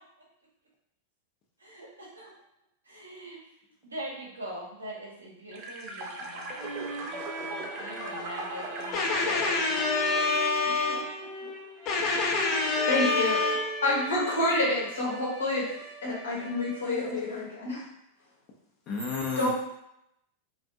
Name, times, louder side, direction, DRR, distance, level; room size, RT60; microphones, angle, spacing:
voice 1, 1.6-2.3 2.8-3.4 3.8-10.4 10.6-11.1 11.4-11.5 19.3-19.4, right 1 dB, 80° right, -4 dB, 0.8 m, -43 dB
sound 1, 5.5-11.2, right 2 dB, 35° right, 0.4 m, -40 dB
sound 2, 6.2-17.0, right 1 dB, 15° right, 0.8 m, -38 dB
voice 2, 8.9-11.1 11.9-13.6 18.9-19.5, left 4 dB, 35° left, 0 dB, 0.6 m, -27 dB
voice 3, 12.9-13.4 13.8-15.7 16.0-17.8 19.4-19.5, left 2 dB, 70° left, -5 dB, 0.9 m, -28 dB
2.5 x 2.2 x 2.6 m, 0.80 s
figure-of-eight pair, 90°, 0 cm